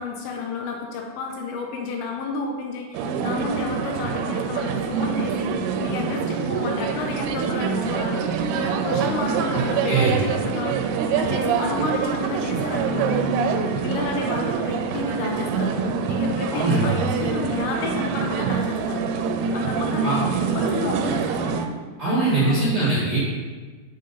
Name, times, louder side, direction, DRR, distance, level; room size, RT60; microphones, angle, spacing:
voice 1, 0.0-8.2 8.6-10.8 11.1-13.3 13.8-19.1 19.5-21.6 22.1-22.7, left 3 dB, 80° left, 1 dB, 2.6 m, -31 dB
sound 1, 2.9-21.7, right 6 dB, 90° right, 2.5 m, -25 dB
voice 2, 9.5-10.1 16.5-16.9 20.0-20.2 22.0-23.2, right 3 dB, 35° right, -11 dB, 2.0 m, -22 dB
6.4 x 6.3 x 4.0 m, 1.4 s
omnidirectional pair, 4.5 m